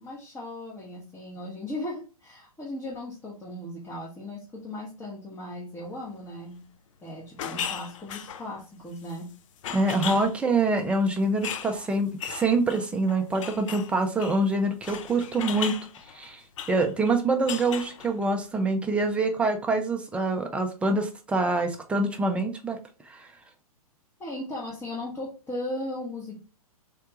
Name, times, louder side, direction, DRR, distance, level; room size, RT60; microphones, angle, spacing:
voice 1, 0.0-6.7 7.0-9.3 24.2-26.4, left 1 dB, 10° left, 0.8 m, -37 dB
sound 1, 7.4-8.5 9.0-9.3 9.6-10.4 11.4-13.9 14.2-14.4 14.8-17.2 17.5-18.3, left 8 dB, 55° left, 0.5 m, -36 dB
voice 2, 9.7-15.8 16.1-16.4 16.7-22.8 23.1-23.3, right 2 dB, 5° right, 0.4 m, -25 dB
3.6 x 2.2 x 2.9 m
hypercardioid pair, 120°, 19 cm